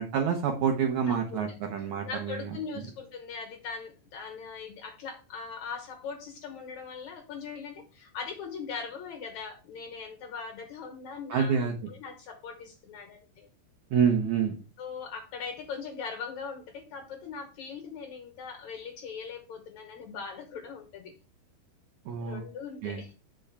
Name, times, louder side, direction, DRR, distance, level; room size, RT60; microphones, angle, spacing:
voice 1, 0.0-2.5 11.3-11.7 13.9-14.5 22.1-22.4 22.8-23.0, right 7 dB, 75° right, 3 dB, 1.7 m, -27 dB
voice 2, 1.1-1.4 2.0-13.5 14.8-21.1 22.2-23.1, left 5 dB, 70° left, 5 dB, 1.8 m, -40 dB
8.7 x 6.2 x 3.4 m, 0.32 s
omnidirectional pair, 4.8 m